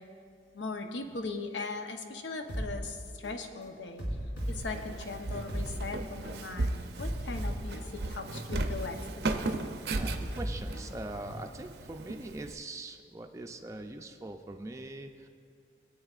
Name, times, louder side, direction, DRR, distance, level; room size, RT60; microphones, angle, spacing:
voice 1, 0.5-4.1 4.5-9.4, left 3 dB, 90° left, 5 dB, 0.8 m, -39 dB
sound 1, 2.5-2.7 3.2-3.4 4.0-5.7 6.2-6.4 7.0-8.7 9.2-9.4 10.0-11.5, equal, 70° left, 2.7 m, -36 dB
Walk footsteps, 4.4-12.5, right 2 dB, 65° right, 0.5 m, -37 dB
voice 2, 10.0-15.3, right 2 dB, 15° right, 4 dB, 0.4 m, -42 dB
18.5 x 8.9 x 2.4 m, 2.3 s
head